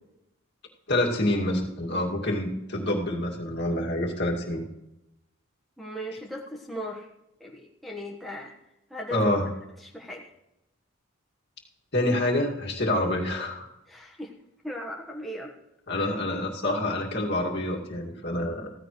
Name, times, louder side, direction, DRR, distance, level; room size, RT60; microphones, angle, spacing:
voice 1, 0.9-4.7 9.1-9.5 11.9-13.7 15.9-18.7, left 1 dB, 50° left, -1 dB, 2.3 m, -27 dB
voice 2, 5.8-7.1 7.4-8.5 8.9-9.2 9.8-10.2 13.9-14.3 14.6-15.5 16.0-16.1, equal, ahead, -2 dB, 1.3 m, -37 dB
15.5 x 15.0 x 3.2 m, 0.89 s
head